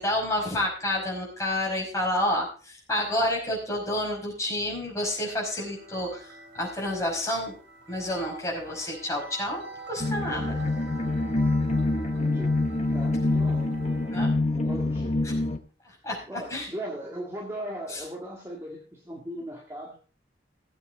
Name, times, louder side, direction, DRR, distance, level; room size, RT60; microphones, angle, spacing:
voice 1, 0.0-7.5 7.9-9.6 9.9-10.6 14.1-14.3 16.0-16.2 16.5-16.7 17.9-18.0, left 1 dB, 15° left, -2 dB, 5.4 m, -29 dB
sound 1, 4.9-14.4, right 3 dB, 80° right, 3.4 m, -46 dB
sound 2, 10.0-15.6, left 2 dB, 35° left, 1.1 m, -26 dB
voice 2, 12.1-12.6 12.9-13.8 14.5-15.2 16.3-20.0, equal, 15° right, -2 dB, 2.0 m, -38 dB
17.0 x 8.2 x 3.9 m, 0.39 s
head